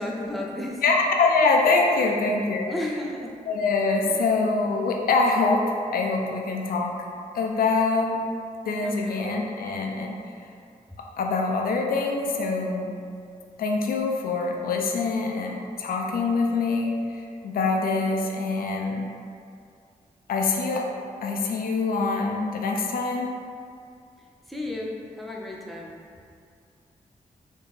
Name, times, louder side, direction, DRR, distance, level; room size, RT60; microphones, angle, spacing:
voice 1, 0.0-0.8 1.9-2.4 2.6-3.4 8.8-9.2 24.5-26.0, left 1 dB, ahead, -2 dB, 0.5 m, -33 dB
voice 2, 0.8-2.7 3.5-7.0 7.3-8.2 8.6-10.2 11.2-12.9 13.6-19.1 20.3-20.9 21.2-23.3 25.3-25.4, left 3 dB, 85° left, 1 dB, 0.4 m, -24 dB
4.1 x 2.4 x 3.5 m, 2.3 s
cardioid pair, 65°, 15 cm